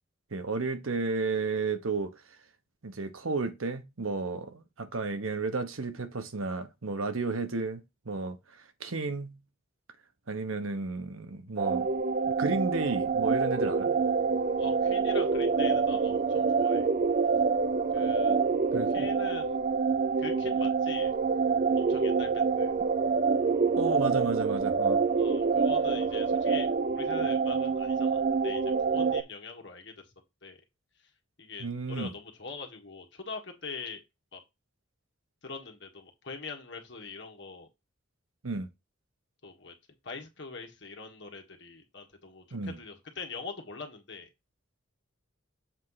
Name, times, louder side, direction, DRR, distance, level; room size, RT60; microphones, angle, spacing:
voice 1, 0.3-2.1 2.8-8.4 8.8-9.4 10.3-11.9 12.4-14.0 18.7-19.1 23.8-25.0 31.6-32.1 38.4-38.7 42.5-42.8, right 3 dB, 85° right, 1.1 m, -32 dB
sound 1, 11.6-29.2, right 5 dB, 40° right, 0.4 m, -26 dB
voice 2, 14.6-16.9 17.9-18.4 18.9-19.6 20.2-21.1 21.7-22.7 25.2-26.7 26.9-30.1 30.4-30.6 31.4-34.0 34.3-34.4 35.4-37.7 39.4-39.7 40.0-44.3, left 4 dB, 60° left, 1.7 m, -43 dB
7.3 x 3.3 x 5.6 m
head